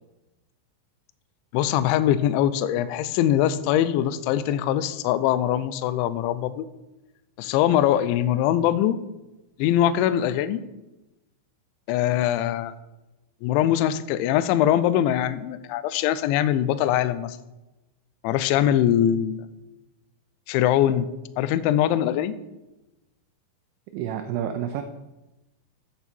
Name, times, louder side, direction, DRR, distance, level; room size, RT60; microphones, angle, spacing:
voice 1, 1.5-6.7 7.4-9.0 9.6-10.6 11.9-12.7 13.4-17.4 18.2-19.4 20.5-21.1 21.4-22.3, left 11 dB, 80° left, 13 dB, 2.7 m, -22 dB
voice 2, 23.9-24.8, right 9 dB, 80° right, 6 dB, 2.9 m, -29 dB
14.0 x 8.4 x 4.5 m, 1.0 s
omnidirectional pair, 5.8 m